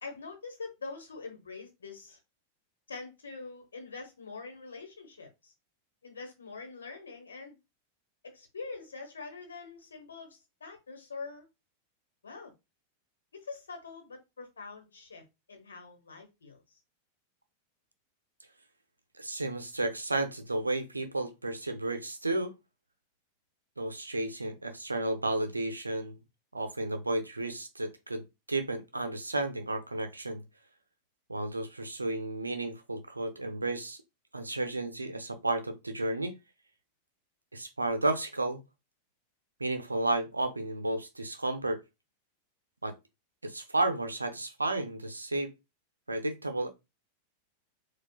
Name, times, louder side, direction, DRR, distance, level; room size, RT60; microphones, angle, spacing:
voice 1, 0.0-2.2 2.9-5.5 6.0-7.5 8.2-11.5 12.2-12.5 13.3-16.8, left 4 dB, 70° left, 1.1 m, -44 dB
voice 2, 19.2-22.5 23.8-26.2 26.5-28.2 28.5-30.4 31.3-34.0 34.3-36.4 37.5-38.6 39.6-41.8 42.8-42.9 43.4-45.5 46.1-46.7, right 2 dB, 80° right, 0.5 m, -32 dB
4.3 x 2.3 x 2.3 m
figure-of-eight pair, 90°, 0 cm